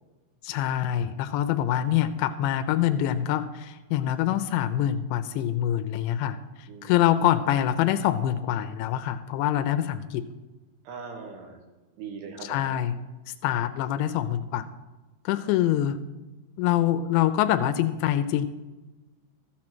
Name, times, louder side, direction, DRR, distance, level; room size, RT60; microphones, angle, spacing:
voice 1, 0.4-10.2 12.4-13.0 13.3-14.7 15.3-16.0 16.6-18.5, left 11 dB, 85° left, 11 dB, 2.8 m, -25 dB
voice 2, 6.7-7.1 10.9-11.6 12.0-12.8, right 5 dB, 75° right, 3 dB, 3.6 m, -40 dB
13.5 x 8.6 x 6.0 m, 1.2 s
omnidirectional pair, 5.0 m